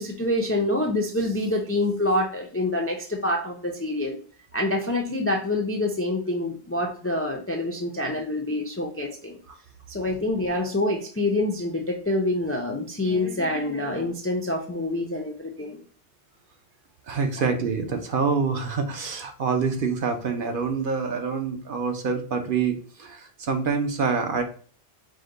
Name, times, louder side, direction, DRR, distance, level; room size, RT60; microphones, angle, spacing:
voice 1, 0.0-4.2 4.5-9.4 9.9-15.8, left 1 dB, 20° left, 1 dB, 0.3 m, -26 dB
voice 2, 17.1-24.4, right 5 dB, 60° right, 5 dB, 0.8 m, -26 dB
5.0 x 2.2 x 3.8 m, 0.43 s
omnidirectional pair, 1.1 m